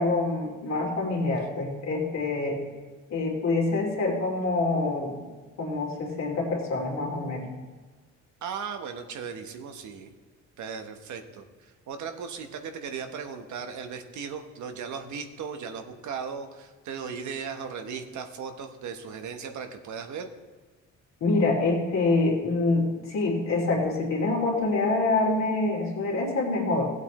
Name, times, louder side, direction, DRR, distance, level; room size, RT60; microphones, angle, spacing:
voice 1, 0.0-2.6 3.1-5.2 5.6-7.5 21.2-26.9, left 3 dB, 65° left, -2 dB, 2.9 m, -26 dB
voice 2, 8.4-10.1 10.6-20.3, right 6 dB, 70° right, 6 dB, 1.1 m, -37 dB
16.0 x 8.1 x 3.1 m, 1.3 s
cardioid pair, 90°, 30 cm